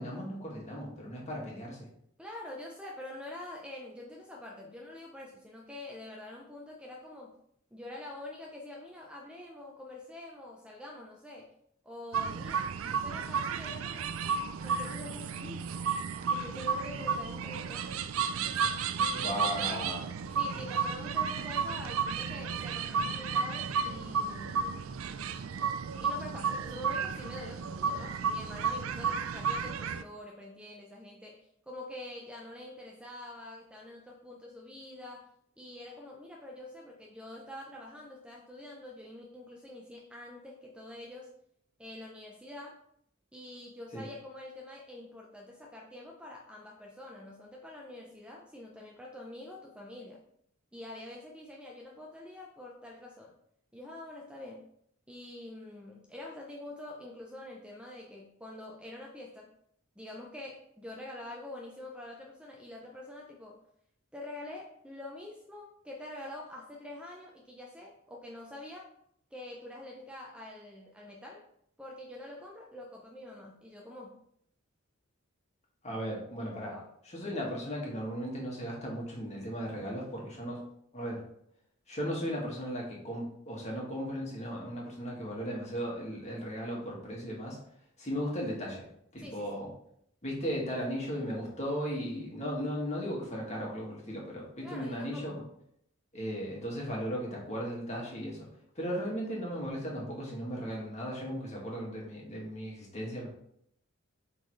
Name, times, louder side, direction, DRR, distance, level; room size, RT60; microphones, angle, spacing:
voice 1, 0.0-1.9 19.2-20.1 43.9-44.0 75.8-76.7 77.0-80.6 80.9-81.2 81.9-87.6 88.0-88.9 89.1-89.7 90.2-95.3 96.1-98.5 98.8-103.3, equal, 35° left, -3 dB, 2.0 m, -36 dB
voice 2, 2.2-7.3 7.7-11.5 11.8-14.1 14.6-15.7 16.3-17.9 19.0-19.8 20.4-24.7 26.0-35.3 35.6-41.3 41.8-42.8 43.3-50.2 50.7-53.3 53.7-54.7 55.1-59.5 60.0-63.6 64.1-68.9 69.3-71.5 71.8-74.2 76.6-76.9 89.2-89.6 94.6-95.4, left 1 dB, 5° right, -2 dB, 0.6 m, -46 dB
sound 1, 12.1-30.0, right 6 dB, 75° right, 0.4 m, -33 dB
8.0 x 4.0 x 3.2 m, 0.70 s
head